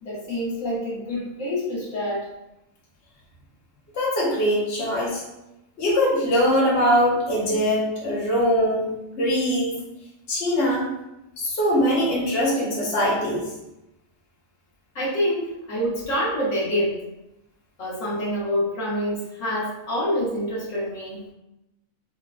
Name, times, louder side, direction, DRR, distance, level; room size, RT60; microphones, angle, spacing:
voice 1, 0.0-2.3 14.9-17.0 17.8-21.3, equal, 70° left, -7 dB, 1.2 m, -26 dB
voice 2, 3.9-5.2 5.8-9.8 10.3-10.9 11.4-13.4, equal, 50° left, -5 dB, 1.1 m, -22 dB
4.7 x 2.1 x 2.3 m, 0.90 s
omnidirectional pair, 1.4 m